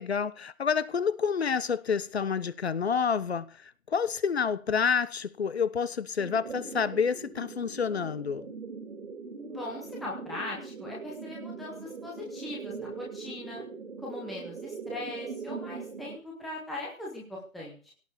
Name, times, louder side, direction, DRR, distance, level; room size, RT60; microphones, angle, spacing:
voice 1, 0.0-8.5, left 6 dB, 50° left, 1.2 m, -29 dB
sound 1, 6.2-16.2, right 4 dB, 55° right, 2.9 m, -41 dB
voice 2, 9.5-13.6 14.0-17.9, left 2 dB, ahead, 0.9 m, -40 dB
17.5 x 7.1 x 8.1 m
hypercardioid pair, 160°, 42 cm